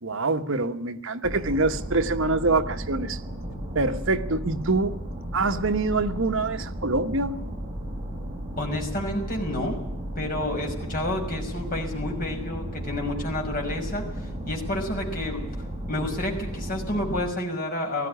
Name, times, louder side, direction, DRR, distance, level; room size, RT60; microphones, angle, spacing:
voice 1, 0.0-3.2 3.7-4.9 5.3-7.5, right 3 dB, 65° right, 7 dB, 1.2 m, -25 dB
sound 1, 1.2-17.2, right 1 dB, 20° right, 6.7 m, -34 dB
voice 2, 8.6-9.8 10.2-15.4 15.9-18.1, left 1 dB, 40° left, 1 dB, 5.8 m, -30 dB
19.0 x 15.0 x 10.0 m, 0.80 s
head